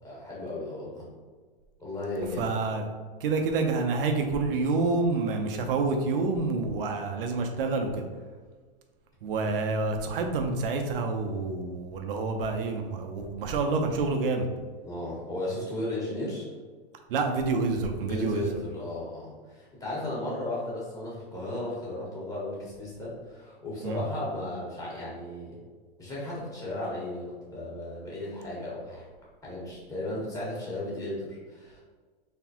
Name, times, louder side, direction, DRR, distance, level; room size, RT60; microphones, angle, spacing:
voice 1, 0.0-1.0 1.8-2.5 9.4-9.5 14.8-16.5 18.1-25.5 26.0-29.0 29.4-31.8, left 1 dB, 10° left, -7 dB, 1.5 m, -35 dB
voice 2, 2.4-2.8 3.2-8.1 9.2-14.5 17.1-18.5 23.8-24.0, right 3 dB, 65° right, 4 dB, 0.8 m, -28 dB
4.2 x 3.2 x 2.9 m, 1.4 s
hypercardioid pair, 135°, 29 cm